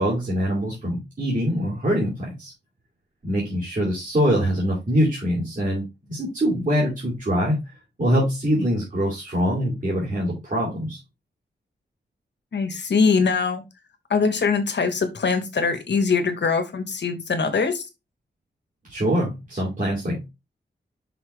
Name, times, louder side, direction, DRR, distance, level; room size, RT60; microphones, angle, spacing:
voice 1, 0.0-2.5 3.2-7.6 8.0-11.0 18.9-20.3, equal, 45° right, -5 dB, 2.7 m, -24 dB
voice 2, 12.5-13.6 14.1-17.8, left 5 dB, 70° left, 9 dB, 1.4 m, -22 dB
5.8 x 5.7 x 3.3 m, 0.24 s
wide cardioid pair, 125°, 19 cm